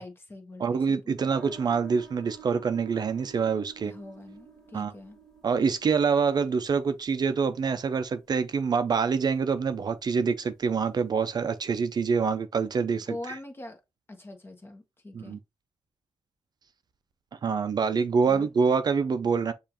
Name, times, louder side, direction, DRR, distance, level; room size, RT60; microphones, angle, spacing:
voice 1, 0.0-1.3 3.8-5.2 12.9-13.8 14.1-15.4 18.3-18.5, left 1 dB, 25° left, 1.2 m, -43 dB
voice 2, 0.6-3.9 4.7-4.9 5.4-13.3 15.1-15.4 17.4-19.5, right 5 dB, 50° right, 0.4 m, -26 dB
sound 1, 1.2-12.3, right 6 dB, 5° left, 1.4 m, -53 dB
6.7 x 2.5 x 2.8 m
cardioid pair, 85°, 9 cm